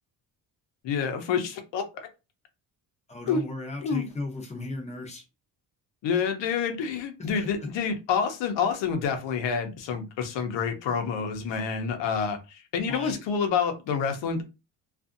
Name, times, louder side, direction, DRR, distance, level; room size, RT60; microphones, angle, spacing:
voice 1, 0.8-2.1 3.3-3.4 3.8-4.1 6.0-14.4, left 6 dB, 85° left, 0.8 m, -28 dB
voice 2, 3.1-5.2 7.2-7.7 12.9-13.2, left 2 dB, 15° left, 0.6 m, -35 dB
2.6 x 2.5 x 2.5 m
cardioid pair, 170°, 43 cm